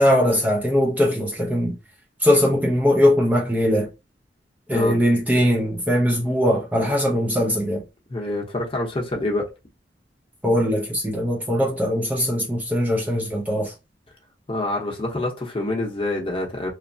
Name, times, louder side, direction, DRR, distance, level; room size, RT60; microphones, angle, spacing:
voice 1, 0.0-1.8 2.2-3.9 4.7-7.8 10.4-13.7, equal, 10° right, 0.4 m, -20 dB
voice 2, 8.1-9.5 14.5-16.7, left 2 dB, 30° left, 0.7 m, -26 dB
3.1 x 2.0 x 2.5 m
head